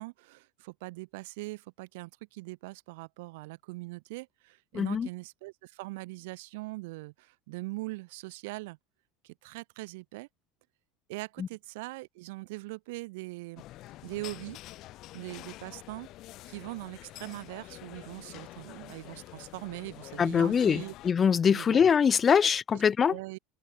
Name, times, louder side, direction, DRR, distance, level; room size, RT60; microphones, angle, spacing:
voice 1, 0.0-8.8 9.2-10.3 11.1-13.6 14.0-14.6 15.1-16.1 16.5-20.9 21.5-21.9 22.4-22.8 23.1-23.4, right 23 dB, 75° right, 4.8 m, -41 dB
voice 2, 4.7-5.1 11.4-11.5 20.2-23.1, left 7 dB, 25° left, 0.4 m, -23 dB
sound 1, 13.6-21.1, left 16 dB, 50° left, 1.5 m, -47 dB
open air
supercardioid pair, 135°, 0 cm